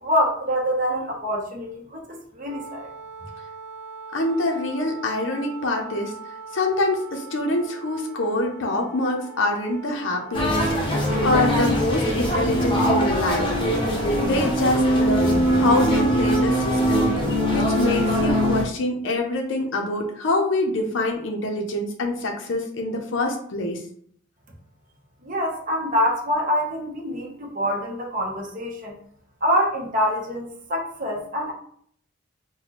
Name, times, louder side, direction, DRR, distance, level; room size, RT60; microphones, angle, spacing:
voice 1, 0.0-2.9 25.2-28.9 29.4-31.5, equal, 40° right, -1 dB, 0.8 m, -25 dB
Wind instrument woodwind instrument, 2.4-11.6, right 4 dB, 85° right, 0.6 m, -41 dB
voice 2, 4.1-6.1 6.5-13.5 14.2-17.1 17.5-23.8, left 2 dB, 65° left, 2 dB, 0.5 m, -25 dB
sound 1, 10.3-18.6, equal, 25° left, 0.7 m, -21 dB
4.1 x 2.1 x 2.9 m, 0.63 s
head